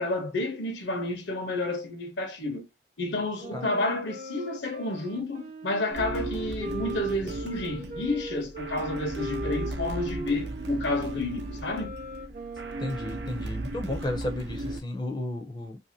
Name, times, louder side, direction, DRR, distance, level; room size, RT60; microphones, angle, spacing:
voice 1, 0.0-2.7 3.0-11.9, left 2 dB, 85° left, 0.9 m, -30 dB
Wind instrument woodwind instrument, 3.4-13.4, right 1 dB, 45° right, 0.5 m, -39 dB
sound 1, 5.9-14.8, right 2 dB, 80° right, 0.7 m, -36 dB
voice 2, 12.8-15.8, left 1 dB, 25° left, 0.5 m, -33 dB
2.9 x 2.7 x 2.7 m
head